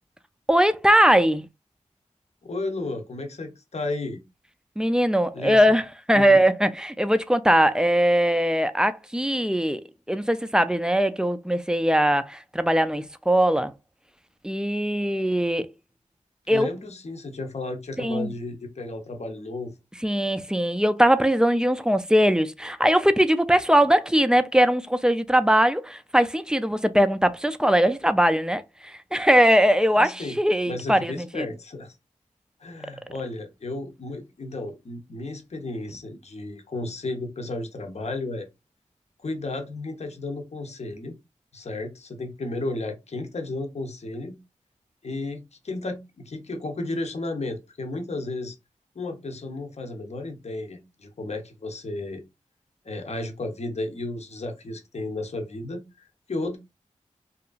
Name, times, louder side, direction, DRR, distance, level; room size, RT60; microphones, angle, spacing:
voice 1, 0.5-1.5 4.8-5.8 6.1-13.7 14.4-15.7 16.5-16.7 18.0-18.3 20.0-31.4, equal, 5° right, 0.3 m, -21 dB
voice 2, 2.4-4.2 5.3-5.6 6.1-6.4 16.4-19.8 30.0-30.4 30.7-32.0 32.6-38.5 39.2-41.1 41.5-44.4 45.0-48.6 48.9-52.2 52.8-56.6, left 2 dB, 55° left, 0.7 m, -33 dB
2.8 x 2.4 x 2.3 m
cardioid pair, 50°, 13 cm